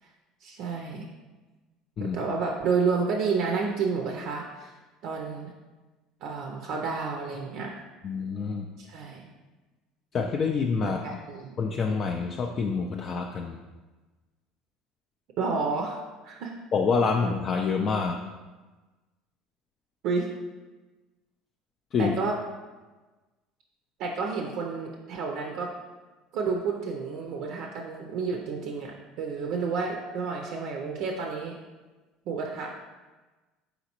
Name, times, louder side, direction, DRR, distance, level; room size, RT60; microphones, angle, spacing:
voice 1, 0.4-1.1 2.0-4.7 5.0-5.5 6.2-7.8 8.8-9.3 10.8-11.5 15.4-16.5 20.0-20.3 22.0-22.4 24.0-25.7 26.3-31.6 32.3-32.7, right 4 dB, 65° right, 1 dB, 0.4 m, -30 dB
voice 2, 8.0-8.7 10.1-11.0 11.6-13.6 16.7-18.2 21.9-22.1, left 5 dB, 40° left, 2 dB, 0.3 m, -27 dB
4.0 x 3.9 x 2.9 m, 1.2 s
supercardioid pair, 95°, 0 cm